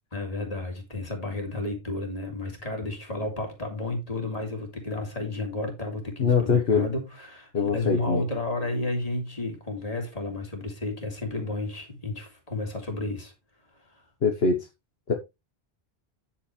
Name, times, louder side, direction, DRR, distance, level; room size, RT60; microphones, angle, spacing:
voice 1, 0.1-13.3 13.8-13.9, left 2 dB, 35° left, 3.2 m, -32 dB
voice 2, 6.2-6.9 7.5-8.2 14.2-14.6 15.1-15.2, left 5 dB, 75° left, 1.6 m, -23 dB
10.0 x 8.5 x 3.3 m
omnidirectional pair, 1.0 m